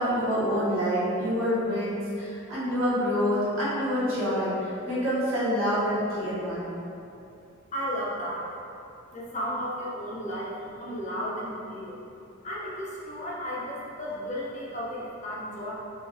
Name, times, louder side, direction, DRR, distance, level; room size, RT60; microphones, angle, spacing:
voice 1, 0.0-6.7, equal, 85° right, -11 dB, 1.4 m, -27 dB
voice 2, 7.7-8.5 9.1-12.0 12.4-15.7, equal, 35° left, -5 dB, 0.6 m, -34 dB
4.7 x 2.4 x 2.6 m, 2.7 s
head